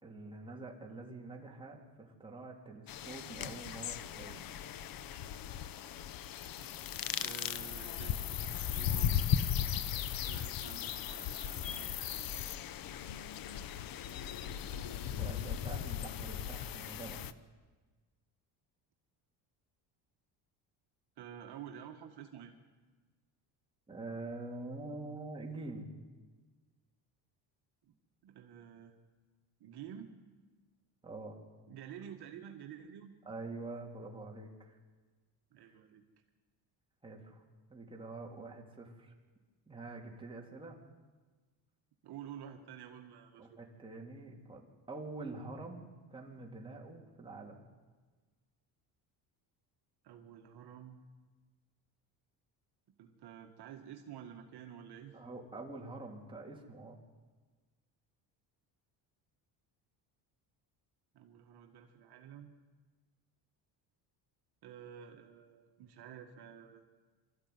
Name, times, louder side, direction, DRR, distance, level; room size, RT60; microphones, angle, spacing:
voice 1, 0.0-4.6 15.2-17.2 23.9-25.9 31.0-31.4 33.2-34.8 37.0-37.4 37.7-39.1 39.7-40.8 43.4-47.6 55.1-57.0, right 2 dB, 10° right, -1 dB, 3.2 m, -46 dB
sound 1, 2.9-17.3, left 9 dB, 50° left, 0.9 m, -37 dB
voice 2, 7.1-9.3 10.3-12.4 14.5-15.6 21.2-22.5 27.8-28.0 28.2-29.0 29.6-30.1 31.7-33.1 35.5-36.0 42.0-43.6 50.0-51.0 53.0-55.2 61.1-62.6 64.6-66.8, right 9 dB, 60° right, 3 dB, 1.8 m, -50 dB
25.0 x 14.0 x 9.5 m, 1.4 s
cardioid pair, 135°, 44 cm